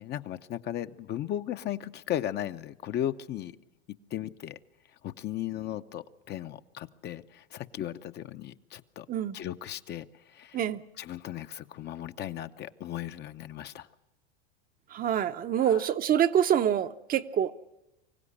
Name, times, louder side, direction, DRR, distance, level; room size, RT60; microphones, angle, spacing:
voice 1, 0.0-3.5 4.1-4.6 5.0-9.1 9.3-10.1 10.3-10.6 11.0-13.9 15.7-15.8, left 12 dB, 35° left, 0.8 m, -36 dB
voice 2, 14.9-17.5, right 9 dB, 30° right, 0.8 m, -26 dB
24.5 x 16.0 x 10.0 m
supercardioid pair, 120°, 31 cm